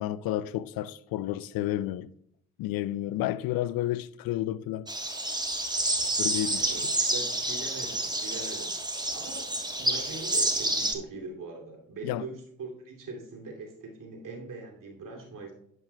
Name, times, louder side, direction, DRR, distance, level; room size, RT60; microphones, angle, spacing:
voice 1, 0.0-2.1 2.6-4.9 6.2-6.9 12.0-12.2, left 14 dB, 65° left, 0.5 m, -31 dB
sound 1, 4.9-10.9, right 2 dB, 10° right, 1.3 m, -29 dB
voice 2, 6.4-8.7 9.1-9.4 9.8-15.5, right 3 dB, 55° right, 2.8 m, -42 dB
10.5 x 8.7 x 2.3 m
hypercardioid pair, 45°, 38 cm